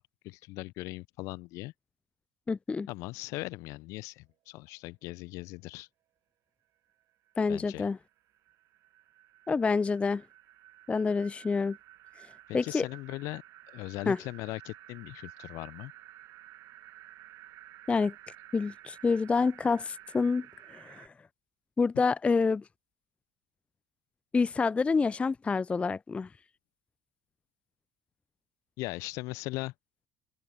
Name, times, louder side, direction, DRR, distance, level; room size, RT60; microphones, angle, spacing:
voice 1, 0.2-1.7 2.9-5.9 7.5-7.9 12.5-13.4 13.7-15.9 28.8-29.7, left 21 dB, 60° left, 0.9 m, -39 dB
voice 2, 2.5-2.9 7.4-8.0 9.5-10.2 10.9-11.8 12.5-12.9 14.1-14.2 17.9-18.1 18.5-21.1 21.8-22.6 24.3-26.3, left 4 dB, 20° left, 0.4 m, -27 dB
sound 1, 6.9-7.0 7.3-21.1, right 14 dB, 55° right, 1.0 m, -53 dB
open air
figure-of-eight pair, 60°, 6 cm